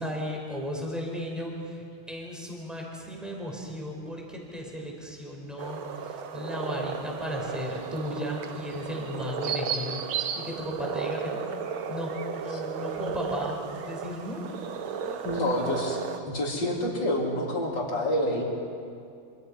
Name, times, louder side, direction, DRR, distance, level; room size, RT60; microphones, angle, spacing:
voice 1, 0.0-10.0 10.3-11.4 11.9-12.1 12.4-14.4 15.0-15.4, equal, ahead, -1 dB, 4.7 m, -35 dB
sound 1, 5.6-16.2, right 6 dB, 90° right, 2.1 m, -34 dB
voice 2, 15.2-16.0 16.3-18.4, left 1 dB, 60° left, -2 dB, 4.3 m, -27 dB
27.0 x 26.5 x 5.6 m, 2.4 s
omnidirectional pair, 2.2 m